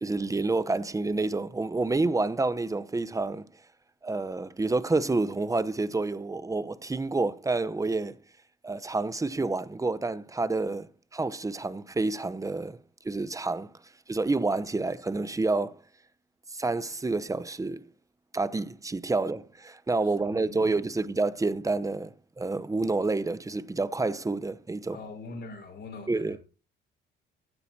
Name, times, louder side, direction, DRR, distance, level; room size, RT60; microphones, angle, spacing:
voice 1, 0.0-3.5 4.0-8.2 8.6-12.8 13.0-13.7 14.1-15.8 16.5-17.9 18.3-25.0 26.1-26.4, right 3 dB, 15° right, 0.8 m, -29 dB
voice 2, 20.0-20.8 24.9-26.4, left 3 dB, 60° left, 5.3 m, -43 dB
16.0 x 12.0 x 2.8 m
cardioid pair, 90°, 20 cm